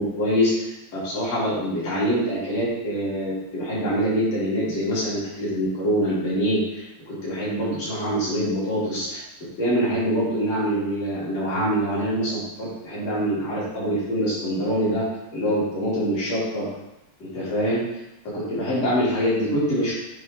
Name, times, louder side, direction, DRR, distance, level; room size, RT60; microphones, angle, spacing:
voice 1, 0.0-9.2 9.6-15.0 15.3-16.7 17.2-17.8 18.3-19.9, equal, 45° left, -10 dB, 3.9 m, -24 dB
8.3 x 5.2 x 3.3 m, 0.89 s
omnidirectional pair, 4.1 m